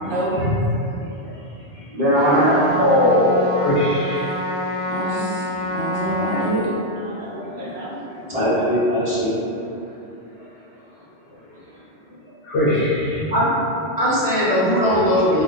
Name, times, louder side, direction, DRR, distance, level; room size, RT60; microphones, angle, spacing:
voice 1, 0.0-0.5 1.2-1.3 1.7-1.8 2.8-4.3 12.4-13.3 14.9-15.0, left 1 dB, 70° left, -10 dB, 0.9 m, -20 dB
voice 2, 1.9-2.6 5.4-5.6 7.5-9.4 13.3-13.5 14.0-15.4, equal, 35° right, -10 dB, 0.8 m, -20 dB
Trumpet, 2.1-6.6, left 1 dB, 20° left, 0.4 m, -27 dB
voice 3, 4.9-6.7 7.0-8.2 12.6-12.8, right 1 dB, 65° right, -8 dB, 1.2 m, -28 dB
2.4 x 2.1 x 3.7 m, 2.7 s
omnidirectional pair, 1.2 m